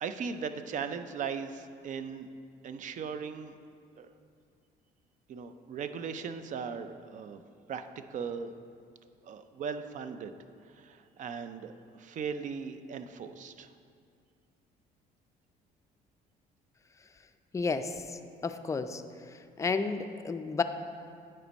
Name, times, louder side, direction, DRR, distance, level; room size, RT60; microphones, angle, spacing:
voice 1, 0.0-2.3 2.6-3.5 4.0-4.1 5.3-7.4 7.7-8.5 9.2-10.3 10.6-13.7, right 6 dB, 50° right, 10 dB, 0.5 m, -38 dB
voice 2, 17.5-19.0 19.6-20.6, left 4 dB, 20° left, 8 dB, 0.4 m, -32 dB
9.8 x 4.4 x 5.2 m, 2.3 s
cardioid pair, 110°, 17 cm